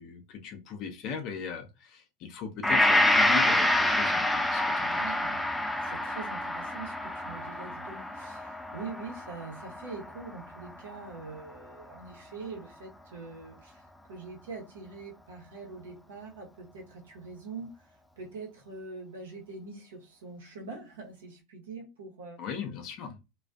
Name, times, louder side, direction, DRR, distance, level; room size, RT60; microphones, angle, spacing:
voice 1, 0.0-5.0 22.4-23.2, left 6 dB, 50° left, 0.6 m, -38 dB
Gong, 2.6-10.9 11.4-11.5, left 1 dB, 5° left, 0.3 m, -27 dB
voice 2, 4.8-22.4, right 4 dB, 80° right, 0.9 m, -44 dB
2.4 x 2.3 x 2.3 m
hypercardioid pair, 85°, 0 cm